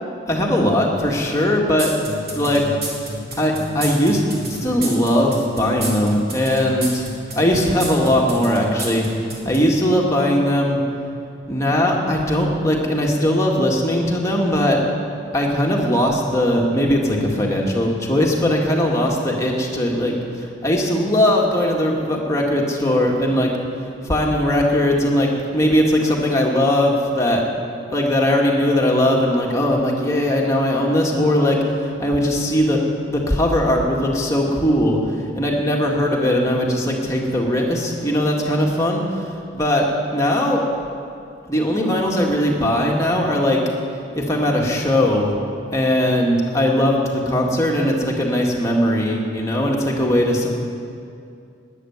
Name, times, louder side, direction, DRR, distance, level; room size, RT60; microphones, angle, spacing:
voice 1, 0.3-1.9 2.3-2.6 3.4-4.2 4.5-7.1 7.4-10.8 11.5-14.8 15.3-23.5 24.0-27.4 27.9-32.8 33.1-39.9 40.1-40.6 41.5-43.6 44.2-45.3 45.7-50.5, left 1 dB, 15° left, -1 dB, 1.9 m, -19 dB
sound 1, 1.8-9.7, right 2 dB, 50° right, 3.3 m, -30 dB
13.0 x 9.7 x 9.4 m, 2.5 s
head